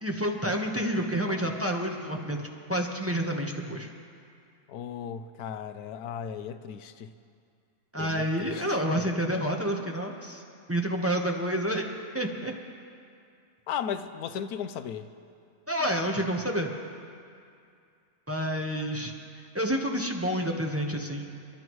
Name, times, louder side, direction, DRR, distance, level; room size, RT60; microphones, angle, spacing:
voice 1, 0.0-3.9 7.9-10.4 10.7-11.8 12.1-12.5 15.7-16.7 18.3-19.1 19.5-21.3, equal, 10° right, 1 dB, 0.8 m, -29 dB
voice 2, 4.7-7.1 7.9-8.8 13.7-15.1, left 8 dB, 80° left, 10 dB, 1.1 m, -36 dB
29.0 x 11.5 x 3.1 m, 2.4 s
omnidirectional pair, 1.6 m